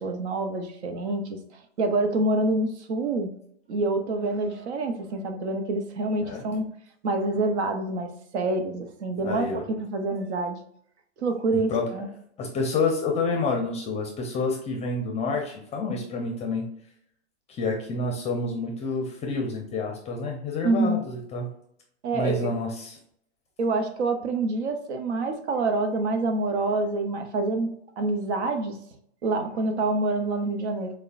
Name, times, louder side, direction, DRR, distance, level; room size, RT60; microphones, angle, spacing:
voice 1, 0.0-1.4 1.8-3.3 3.7-6.7 7.0-10.6 11.2-12.1 20.6-21.0 22.0-22.5 23.6-27.7 28.0-28.8 29.2-30.9, right 2 dB, 65° right, 6 dB, 0.9 m, -26 dB
voice 2, 9.2-9.7 11.5-11.9 12.4-16.6 17.5-21.5 22.1-23.0, left 3 dB, 20° left, 2 dB, 0.6 m, -28 dB
6.5 x 2.2 x 2.5 m, 0.70 s
hypercardioid pair, 115°, 36 cm